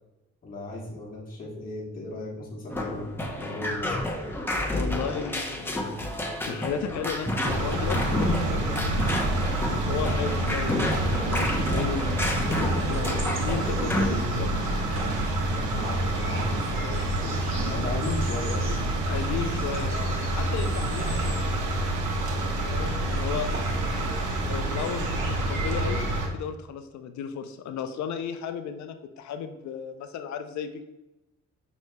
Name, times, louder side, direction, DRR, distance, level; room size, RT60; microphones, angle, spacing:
voice 1, 0.4-3.1 3.4-4.0 4.6-4.9 13.9-14.2 15.5-18.9 23.5-23.6 24.8-24.9, left 2 dB, 30° left, -5 dB, 1.2 m, -36 dB
sound 1, 2.7-14.1, left 1 dB, 5° left, 0.7 m, -30 dB
voice 2, 4.7-6.2 6.5-9.0 9.6-14.8 19.0-22.0 22.7-23.5 24.5-30.8, left 7 dB, 70° left, 8 dB, 0.5 m, -35 dB
sound 2, 7.4-26.3, right 1 dB, 80° right, 0.8 m, -28 dB
sound 3, 12.1-26.1, right 1 dB, 40° right, 1.4 m, -40 dB
6.0 x 3.0 x 2.2 m, 0.97 s
cardioid pair, 90°, 30 cm